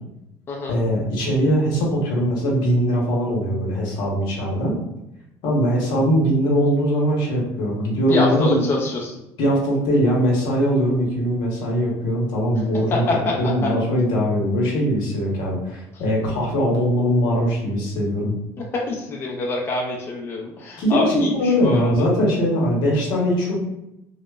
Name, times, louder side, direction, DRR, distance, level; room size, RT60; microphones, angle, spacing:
voice 1, 0.7-4.8 5.4-8.6 9.4-13.0 13.4-18.4 20.8-23.6, equal, 75° left, -3 dB, 0.9 m, -21 dB
voice 2, 8.1-9.2 12.9-13.4 18.7-22.1, left 2 dB, 30° left, -2 dB, 0.4 m, -25 dB
2.8 x 2.0 x 2.2 m, 0.87 s
cardioid pair, 115°, 8 cm